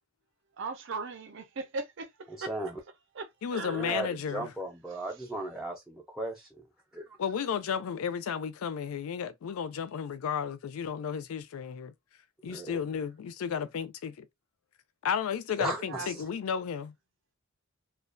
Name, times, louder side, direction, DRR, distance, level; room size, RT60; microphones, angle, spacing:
voice 1, 0.6-2.5 3.1-3.9 15.9-16.1, right 3 dB, 60° right, 0.5 m, -38 dB
voice 2, 2.5-2.8 3.7-6.5 6.9-7.1 12.5-12.8 15.6-16.2, right 2 dB, ahead, 0.4 m, -36 dB
voice 3, 3.4-4.5 7.2-11.9 12.4-14.3 15.0-16.9, left 7 dB, 85° left, 0.4 m, -33 dB
2.3 x 2.2 x 2.4 m
head